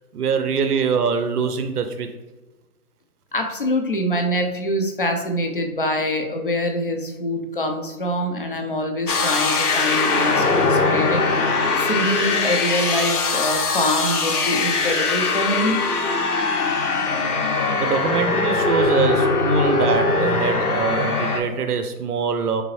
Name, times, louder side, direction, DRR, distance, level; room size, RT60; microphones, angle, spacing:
voice 1, 0.1-2.1 17.8-22.6, right 6 dB, 85° right, 7 dB, 0.6 m, -24 dB
voice 2, 3.3-15.8, left 1 dB, 40° left, 4 dB, 0.4 m, -25 dB
sound 1, 9.1-21.4, left 3 dB, 85° left, 0.9 m, -21 dB
3.8 x 3.3 x 3.0 m, 1.1 s
hypercardioid pair, 160°, 45 cm